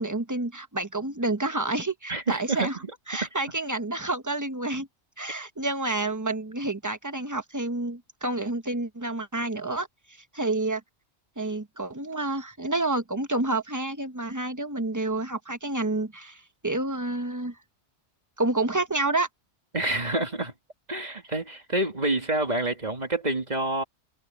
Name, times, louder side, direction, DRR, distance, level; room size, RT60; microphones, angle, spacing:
voice 1, 0.0-2.8 3.1-4.9 5.2-9.9 10.3-10.8 11.4-17.5 18.4-19.3, right 2 dB, 15° right, 1.1 m, -29 dB
voice 2, 2.1-2.7 19.7-20.5 20.9-23.8, right 2 dB, 40° right, 2.5 m, -27 dB
omnidirectional pair, 1.1 m